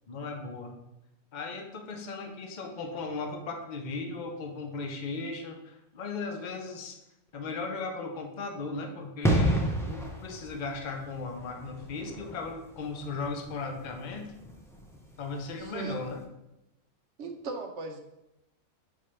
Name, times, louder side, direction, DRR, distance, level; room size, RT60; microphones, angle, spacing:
voice 1, 0.1-0.8 1.3-7.0 7.3-14.3 15.2-16.2, left 3 dB, 40° left, 4 dB, 0.8 m, -37 dB
sound 1, 9.2-15.7 16.0-16.2, right 1 dB, 5° left, 0.6 m, -32 dB
voice 2, 15.6-16.0 17.2-18.0, right 3 dB, 60° right, 4 dB, 1.0 m, -37 dB
5.0 x 4.6 x 5.6 m, 0.89 s
omnidirectional pair, 1.5 m